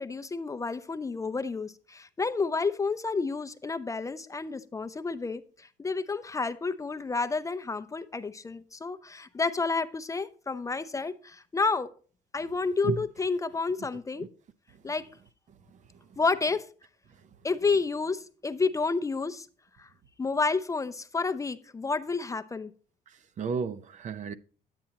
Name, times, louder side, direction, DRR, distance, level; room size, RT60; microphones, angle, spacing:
voice 1, 0.0-11.9 12.3-14.3 14.8-15.1 16.2-16.7 17.4-19.5 19.8-19.9 20.2-22.7, left 4 dB, 20° left, 0.5 m, -30 dB
voice 2, 23.1-24.3, right 5 dB, 45° right, 0.6 m, -32 dB
9.6 x 8.9 x 2.8 m
cardioid pair, 110°, 17 cm